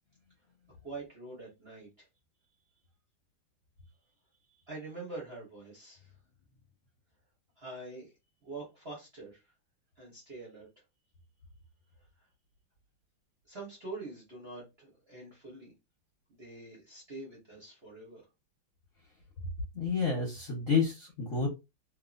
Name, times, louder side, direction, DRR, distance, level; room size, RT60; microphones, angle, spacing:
voice 1, 0.8-2.1 4.7-6.1 7.6-8.1 8.4-9.4 10.0-10.7 13.5-15.7 16.3-18.2, right 2 dB, 40° right, 1.0 m, -45 dB
voice 2, 19.7-21.5, left 5 dB, 50° left, 1.0 m, -29 dB
3.0 x 2.8 x 2.4 m
omnidirectional pair, 2.3 m